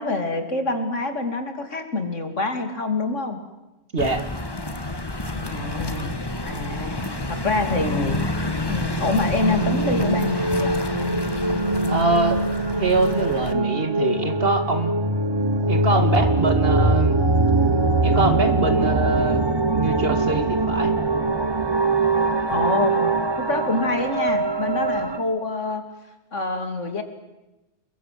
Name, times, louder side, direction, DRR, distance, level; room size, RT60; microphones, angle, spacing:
voice 1, 0.0-3.4 5.3-6.2 6.5-8.2 8.7-10.8 22.5-25.8 26.3-27.0, left 2 dB, 90° left, 7 dB, 3.4 m, -26 dB
voice 2, 3.9-4.2 11.9-12.4 12.8-14.9 15.7-17.2 18.0-19.4 19.7-20.9, right 3 dB, 50° right, 8 dB, 2.5 m, -23 dB
sound 1, 4.0-13.5, left 1 dB, 20° left, 1.6 m, -29 dB
sound 2, 9.1-25.2, right 2 dB, 20° right, 1.3 m, -22 dB
28.5 x 22.5 x 7.9 m, 1.0 s
omnidirectional pair, 1.2 m